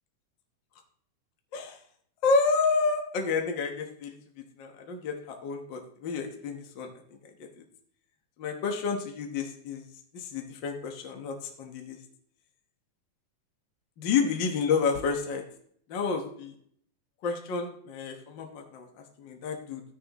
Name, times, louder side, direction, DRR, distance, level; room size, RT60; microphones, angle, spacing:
voice 1, 2.2-4.2 4.6-6.9 7.4-7.5 8.4-9.8 10.1-12.0 14.0-15.4 15.9-16.5 17.2-19.8, left 4 dB, 55° left, 2 dB, 1.3 m, -30 dB
13.5 x 9.7 x 3.0 m, 0.64 s
omnidirectional pair, 3.6 m